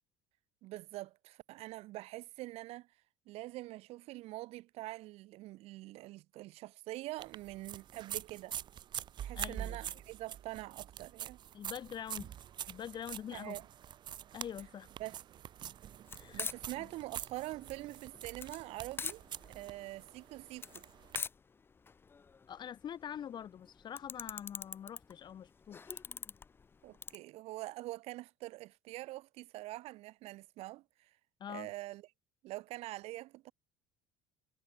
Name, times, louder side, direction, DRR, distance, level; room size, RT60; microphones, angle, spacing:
voice 1, 0.6-2.9 3.3-8.6 9.2-11.4 13.3-13.7 15.0-15.2 16.3-20.8 26.8-31.1 31.5-32.0 32.4-33.5, right 18 dB, 65° right, 2.0 m, -45 dB
sound 1, 7.2-21.2, right 10 dB, 40° right, 0.7 m, -45 dB
voice 2, 9.3-9.8 11.5-12.3 12.7-13.6 14.3-14.9 16.2-16.5 16.8-16.9 22.5-26.0 31.4-31.7, left 9 dB, 40° left, 2.1 m, -45 dB
sound 2, 16.1-27.2, left 5 dB, 20° left, 0.5 m, -45 dB
supercardioid pair, 105°, 11 cm